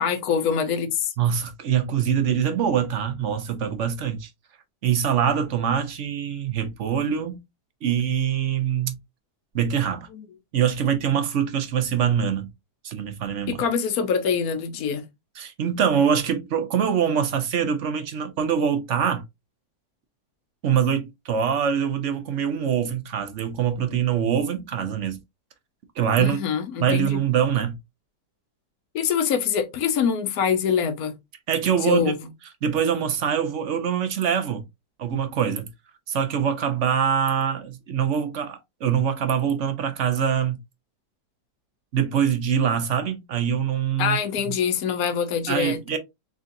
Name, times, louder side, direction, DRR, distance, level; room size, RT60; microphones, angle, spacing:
voice 1, 0.0-1.1 10.1-10.2 13.5-15.0 26.2-27.2 28.9-31.2 31.8-32.3 44.0-45.8, left 7 dB, 65° left, 1.2 m, -24 dB
voice 2, 1.2-4.3 4.8-7.4 7.8-9.0 9.5-10.1 10.5-12.5 12.8-13.6 15.4-19.2 20.6-25.2 26.0-26.4 26.8-27.8 31.5-32.1 32.6-34.6 35.0-35.7 36.1-40.6 41.9-44.2 45.5-46.0, right 8 dB, 55° right, 0.9 m, -24 dB
3.9 x 3.8 x 2.6 m
omnidirectional pair, 1.8 m